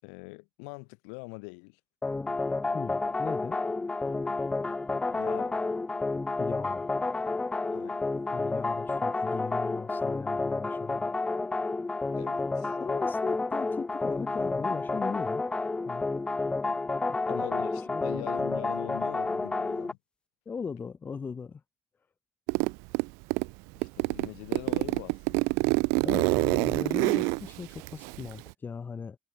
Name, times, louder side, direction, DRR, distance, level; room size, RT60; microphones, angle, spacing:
voice 1, 0.0-1.8 5.1-5.6 7.7-8.1 12.1-12.8 17.3-20.0 23.8-25.5, left 40 dB or more, 90° left, 4.1 m, -42 dB
sound 1, 2.0-19.9, left 3 dB, 20° left, 0.3 m, -30 dB
voice 2, 2.7-3.6 6.4-6.9 8.3-11.1 12.8-15.4 15.9-16.1 17.1-17.5 17.9-18.1 20.5-21.6 26.0-29.2, left 5 dB, 40° left, 2.1 m, -38 dB
Zipper (clothing), 22.5-23.5 23.8-28.5, right 30 dB, 85° right, 0.3 m, -26 dB
supercardioid pair, 60°, 5 cm